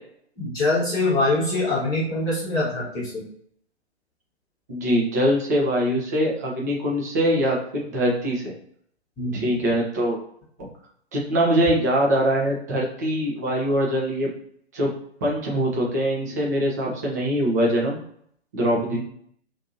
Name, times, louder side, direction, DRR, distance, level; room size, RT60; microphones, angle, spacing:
voice 1, 0.4-3.2 9.2-9.4 18.9-19.0, left 2 dB, 10° left, -9 dB, 0.9 m, -24 dB
voice 2, 4.7-8.5 9.3-10.2 10.6-10.7 11.1-14.3 14.7-14.9 15.2-18.0 18.5-19.0, equal, 15° right, -3 dB, 0.4 m, -23 dB
2.6 x 2.6 x 2.5 m, 0.66 s
figure-of-eight pair, 120°, 33 cm